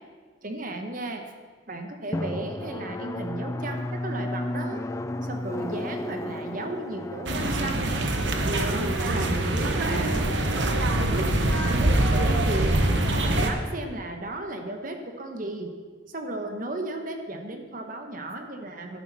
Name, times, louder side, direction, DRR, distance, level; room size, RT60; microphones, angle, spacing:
voice 1, 0.4-1.2 1.7-4.8 5.2-8.1 8.4-10.2 10.9-12.8 13.1-15.7 16.1-19.0, right 2 dB, 45° right, 5 dB, 1.1 m, -35 dB
Drum, 2.1-11.4, left 1 dB, 15° left, 0.3 m, -34 dB
sound 1, 7.3-13.5, right 1 dB, 70° right, 1.0 m, -24 dB
12.0 x 10.5 x 4.1 m, 1.5 s
head